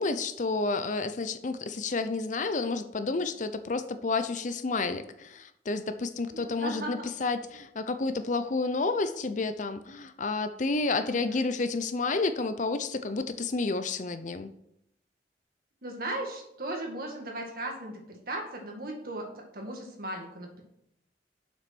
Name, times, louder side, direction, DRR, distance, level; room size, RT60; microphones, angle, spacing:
voice 1, 0.0-14.5, left 3 dB, 45° left, 11 dB, 0.6 m, -30 dB
voice 2, 6.3-7.1 11.1-11.5 15.8-19.3 19.5-20.6, right 1 dB, 55° right, 1 dB, 2.1 m, -37 dB
7.5 x 6.2 x 6.1 m, 0.78 s
head